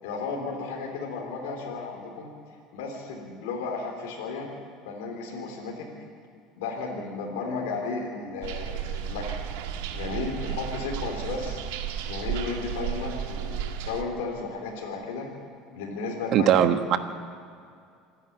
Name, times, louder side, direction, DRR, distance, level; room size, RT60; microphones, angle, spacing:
voice 1, 0.0-2.3 2.7-4.5 4.8-5.9 6.6-9.4 9.9-11.6 12.1-15.3 15.7-16.5, left 4 dB, 90° left, -1 dB, 3.6 m, -34 dB
sound 1, 8.4-14.0, right 9 dB, 85° right, 1.6 m, -33 dB
voice 2, 16.3-17.0, right 10 dB, 55° right, 8 dB, 1.4 m, -20 dB
27.0 x 10.5 x 9.2 m, 2.4 s
supercardioid pair, 115°, 0 cm